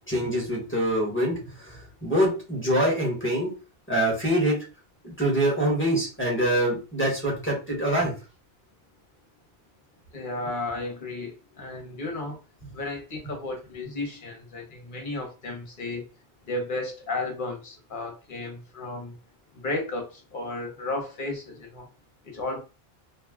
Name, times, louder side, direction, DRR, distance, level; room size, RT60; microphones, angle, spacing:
voice 1, 0.1-3.5 3.9-4.6 5.0-8.1, right 1 dB, 10° left, 1.1 m, -25 dB
voice 2, 10.1-12.4 12.7-16.1 16.5-19.1 19.5-21.9 22.2-22.6, left 2 dB, 55° left, 1.0 m, -33 dB
2.6 x 2.2 x 3.4 m
omnidirectional pair, 1.1 m